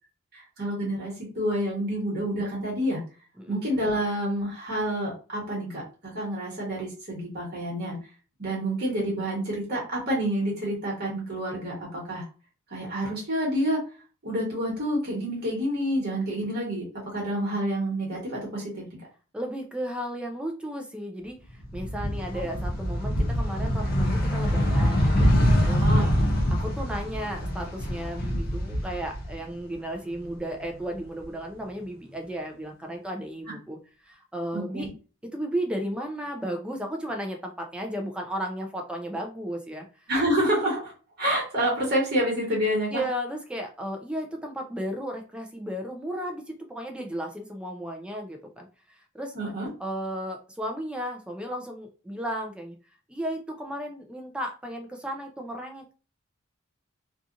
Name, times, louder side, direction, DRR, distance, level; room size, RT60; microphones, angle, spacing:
voice 1, 0.3-3.0 3.5-8.0 8.4-12.3 12.7-13.8 14.2-18.8 25.6-26.1 34.5-34.9 40.1-40.9 41.2-43.0 49.3-49.7, equal, 50° right, -3 dB, 1.2 m, -28 dB
voice 2, 19.3-26.1 26.5-34.9 35.3-40.1 42.9-49.3 49.8-52.7 53.1-55.9, equal, 5° right, 2 dB, 0.4 m, -34 dB
sound 1, 21.6-29.7 30.1-31.2, equal, 45° left, 0.6 m, -25 dB
2.7 x 2.4 x 2.5 m, 0.35 s
head